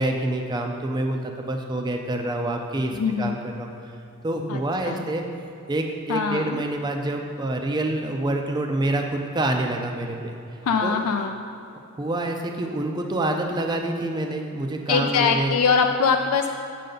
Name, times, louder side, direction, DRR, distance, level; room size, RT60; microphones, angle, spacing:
voice 1, 0.0-3.9 4.2-5.2 5.7-10.2 10.8-11.0 12.0-15.6, right 1 dB, 20° right, 3 dB, 0.4 m, -27 dB
voice 2, 2.9-3.3 4.5-5.0 6.1-6.6 10.6-11.4 14.9-16.5, left 5 dB, 80° left, 5 dB, 0.3 m, -23 dB
7.4 x 6.6 x 3.9 m, 2.8 s
head